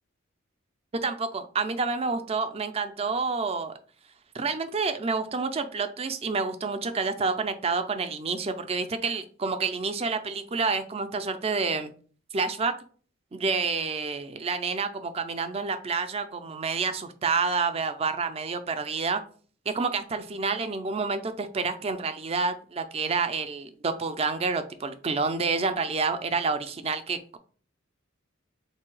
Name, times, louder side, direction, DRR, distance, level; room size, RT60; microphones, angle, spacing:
voice 1, 0.9-3.7 4.3-11.9 12.3-12.7 13.3-19.2 19.7-27.4, right 4 dB, 30° right, 10 dB, 0.4 m, -28 dB
3.7 x 2.7 x 4.6 m, 0.43 s
head